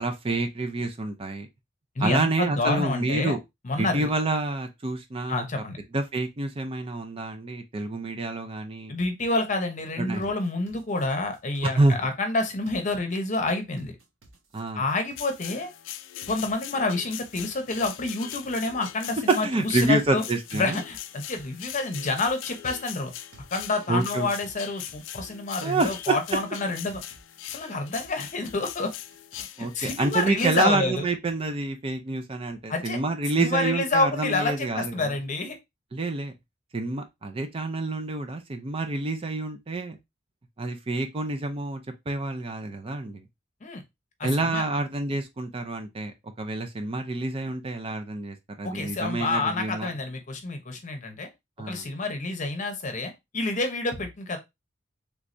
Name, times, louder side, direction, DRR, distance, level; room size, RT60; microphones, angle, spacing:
voice 1, 0.0-1.5 2.0-3.4 3.8-5.4 5.9-8.9 10.0-10.3 11.6-12.0 14.5-14.8 19.4-20.8 23.9-24.3 25.6-26.1 29.6-35.1 35.9-36.3 36.7-40.0 40.6-41.8 42.1-43.2 44.2-49.9 51.6-51.8, right 2 dB, 30° right, 0.4 m, -28 dB
voice 2, 2.0-3.3 3.6-4.1 5.3-5.8 8.9-13.9 14.7-15.7 16.3-20.2 20.5-23.1 23.5-27.0 27.5-28.9 29.4-29.5 29.7-31.0 32.7-33.0 33.4-35.6 43.6-43.8 44.2-44.6 48.6-51.3 51.6-54.4, left 2 dB, 40° left, 0.8 m, -28 dB
sound 1, 10.2-11.9 12.7-13.4 13.8-15.5 16.2-16.9 17.3-19.0 19.8-20.5 20.9-22.6 23.3-24.1 24.4-26.1 26.9-27.6 28.0-29.4, right 2 dB, 80° right, 1.0 m, -55 dB
sound 2, 15.2-30.7, left 12 dB, 70° left, 0.3 m, -41 dB
3.4 x 3.1 x 2.5 m
head